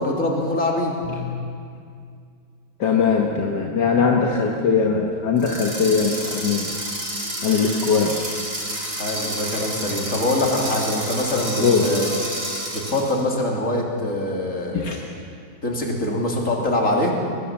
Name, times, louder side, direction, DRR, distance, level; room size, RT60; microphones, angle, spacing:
voice 1, 0.0-0.9 9.0-12.1 12.7-14.9 15.6-17.1, left 1 dB, 45° left, -1 dB, 3.7 m, -23 dB
voice 2, 1.1-1.5 2.8-6.7 7.4-8.3 11.6-11.9 14.7-15.0, left 5 dB, 70° left, 0 dB, 2.0 m, -21 dB
sound 1, 5.4-13.2, right 1 dB, 55° right, 5.3 m, -30 dB
23.0 x 20.0 x 7.3 m, 2.3 s
omnidirectional pair, 1.9 m